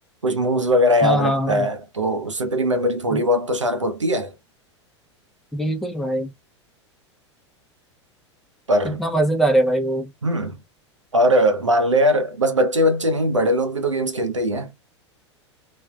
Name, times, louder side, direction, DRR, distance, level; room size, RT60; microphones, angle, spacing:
voice 1, 0.2-4.3 8.7-9.0 10.2-10.6 11.1-14.7, equal, 85° right, 0.6 m, -20 dB
voice 2, 1.0-1.7 3.1-3.2 5.5-6.3 9.0-10.1, right 1 dB, ahead, 0.6 m, -21 dB
3.4 x 2.2 x 2.2 m
figure-of-eight pair, 90°, 15 cm